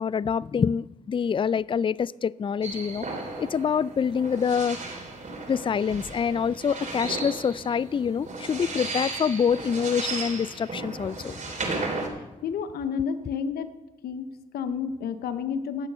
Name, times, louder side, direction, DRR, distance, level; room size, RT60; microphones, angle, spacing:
voice 1, 0.0-3.1 3.4-4.8 5.5-11.4, left 7 dB, 35° left, 0.3 m, -26 dB
sound 1, 2.6-12.1, right 3 dB, 55° right, 3.4 m, -35 dB
voice 2, 12.4-13.7 14.0-15.9, left 6 dB, 85° left, 0.8 m, -30 dB
17.0 x 6.7 x 6.1 m
supercardioid pair, 40°, 16 cm